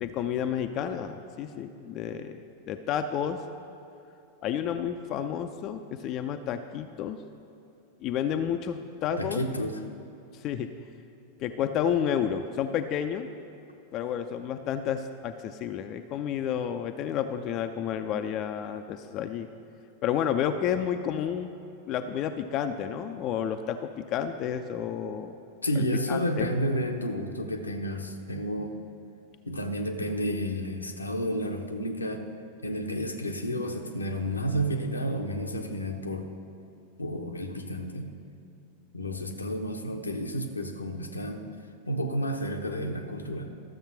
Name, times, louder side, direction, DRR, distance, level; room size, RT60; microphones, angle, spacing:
voice 1, 0.0-3.4 4.4-7.2 8.0-9.4 10.3-10.7 11.4-13.3 13.9-19.5 20.0-21.5 21.9-25.4 25.8-26.5, left 9 dB, 35° left, 7 dB, 0.5 m, -31 dB
voice 2, 9.2-9.8 25.6-28.7 29.5-32.2 32.6-36.3 37.0-38.1 38.9-41.4 41.8-43.5, equal, 80° left, 4 dB, 0.9 m, -31 dB
13.0 x 7.3 x 5.7 m, 2.7 s
figure-of-eight pair, 90°, 0 cm